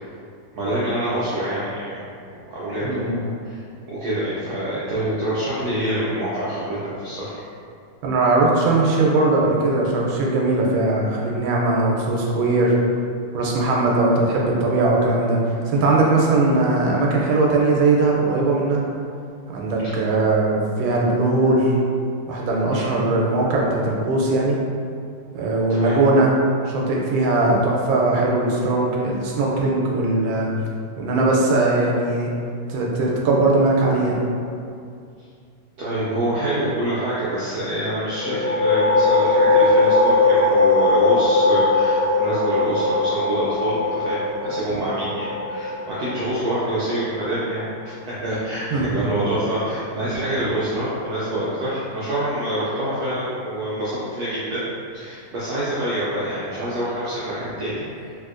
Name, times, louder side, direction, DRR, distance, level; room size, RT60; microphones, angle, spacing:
voice 1, 0.5-1.9 2.5-3.6 3.9-7.3 19.8-20.0 22.7-23.0 25.7-26.0 35.8-54.6 54.9-58.2, right 1 dB, 70° right, -10 dB, 0.9 m, -26 dB
voice 2, 2.8-3.1 8.0-12.8 13.3-18.8 19.5-21.7 22.3-24.6 25.3-26.3 26.7-30.5 31.0-32.3 32.7-34.2 44.7-44.8 48.7-48.9, right 2 dB, 90° right, -2 dB, 1.4 m, -20 dB
sound 1, 38.1-47.5, left 3 dB, 70° left, 1.2 m, -20 dB
3.3 x 2.6 x 2.4 m, 2.4 s
omnidirectional pair, 2.1 m